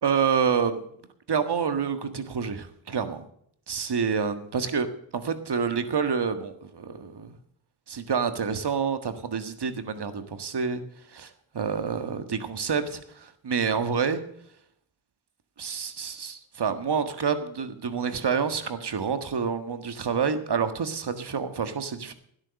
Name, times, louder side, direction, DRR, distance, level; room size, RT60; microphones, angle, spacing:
voice 1, 0.0-0.8 1.3-3.2 3.7-4.9 5.1-7.3 7.9-10.8 11.1-14.2 15.6-22.1, right 6 dB, 55° right, 10 dB, 1.7 m, -28 dB
13.0 x 10.0 x 6.5 m, 0.67 s
supercardioid pair, 45°, 49 cm